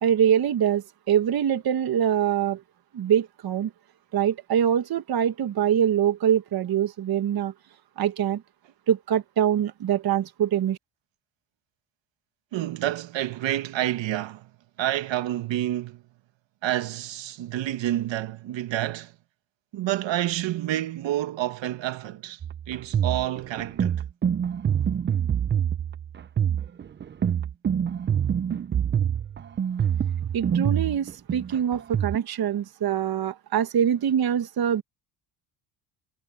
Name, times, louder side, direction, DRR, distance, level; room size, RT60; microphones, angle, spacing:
voice 1, 0.0-2.6 2.9-3.7 4.1-7.5 8.0-8.4 8.9-10.8 30.3-34.8, right 9 dB, 45° right, 1.5 m, -24 dB
voice 2, 12.5-14.5 14.8-16.0 16.6-19.1 19.7-22.4 22.7-24.0, right 13 dB, 60° right, 1.7 m, -29 dB
sound 1, 22.4-32.2, right 8 dB, 25° right, 0.5 m, -26 dB
cardioid pair, 90°, 49 cm